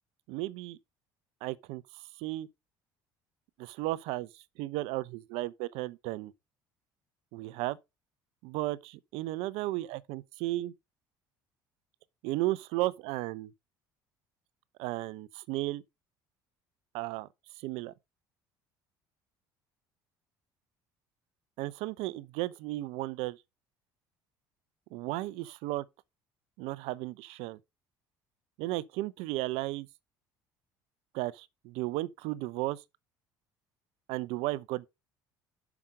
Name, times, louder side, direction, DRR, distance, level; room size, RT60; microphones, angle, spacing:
voice 1, 0.3-0.8 1.4-1.8 2.2-2.5 3.6-6.3 7.3-7.8 8.4-10.7 12.2-13.5 14.8-15.8 16.9-17.3 17.6-17.9 21.6-23.4 24.9-25.8 26.6-27.6 28.6-29.9 31.1-32.8 34.1-34.9, right 18 dB, 75° right, 0.7 m, -34 dB
7.1 x 6.0 x 4.9 m
hypercardioid pair, 70°, 10 cm